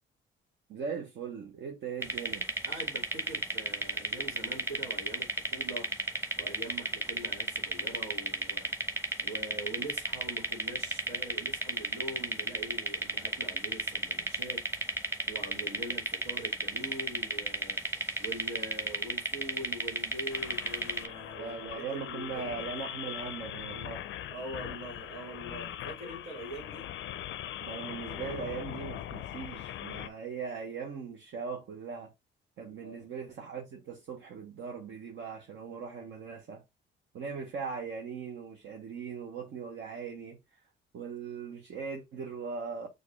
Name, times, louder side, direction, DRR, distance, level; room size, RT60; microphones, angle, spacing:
voice 1, 0.7-2.5 21.4-24.0 27.6-32.1 32.6-36.6 37.1-40.6 40.9-42.9, right 5 dB, 65° right, 1.0 m, -39 dB
sound 1, 2.0-21.1, right 1 dB, 10° right, 0.9 m, -33 dB
voice 2, 2.6-5.9 6.4-22.8 24.3-26.9 32.6-33.1, right 1 dB, 85° right, 1.8 m, -43 dB
sound 2, 20.3-30.1, left 11 dB, 75° left, 0.5 m, -41 dB
6.4 x 2.5 x 3.1 m
cardioid pair, 90°, 20 cm